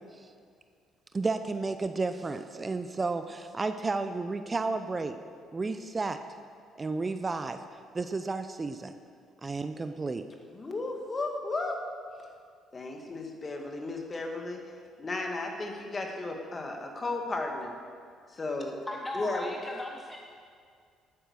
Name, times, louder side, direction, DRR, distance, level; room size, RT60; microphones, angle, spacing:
voice 1, 1.1-5.2 5.5-6.2 6.8-7.6 7.9-8.9 9.4-10.2, right 3 dB, 30° right, 9 dB, 0.7 m, -32 dB
voice 2, 10.5-11.8 12.7-14.6 15.0-17.7 18.3-18.8 19.1-19.5, left 2 dB, 35° left, 2 dB, 2.2 m, -34 dB
voice 3, 18.9-20.2, left 1 dB, 15° left, 1 dB, 1.1 m, -37 dB
12.0 x 9.2 x 6.4 m, 2.2 s
supercardioid pair, 60°, 0 cm